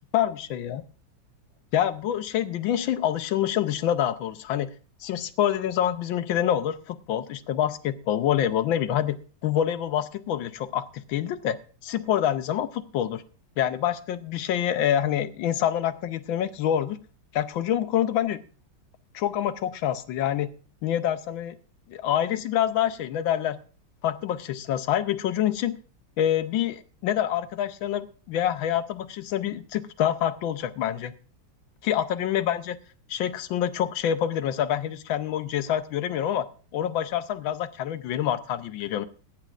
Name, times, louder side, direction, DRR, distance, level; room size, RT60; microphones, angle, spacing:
voice 1, 0.1-0.8 1.7-4.7 5.0-9.2 9.4-13.2 13.6-17.0 17.3-18.4 19.1-20.5 20.8-21.5 21.9-23.6 24.0-25.8 26.2-31.1 31.8-32.8 33.1-36.5 36.7-39.1, left 10 dB, 85° left, 12 dB, 1.6 m, -26 dB
21.5 x 10.5 x 2.5 m, 0.40 s
omnidirectional pair, 2.1 m